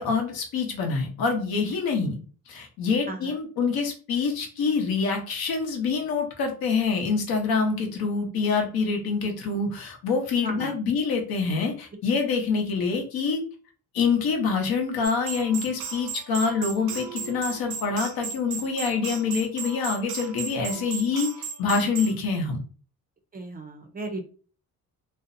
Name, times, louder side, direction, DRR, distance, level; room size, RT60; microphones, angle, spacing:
voice 1, 0.0-2.2 2.5-13.4 13.9-21.3 21.6-22.6, left 5 dB, 75° left, 3 dB, 0.8 m, -26 dB
voice 2, 3.1-3.4 10.4-10.7 23.3-24.3, right 2 dB, 25° right, 5 dB, 0.4 m, -35 dB
sound 1, 15.0-22.2, right 6 dB, 80° right, 0.6 m, -36 dB
2.6 x 2.0 x 2.5 m, 0.39 s
cardioid pair, 110°, 37 cm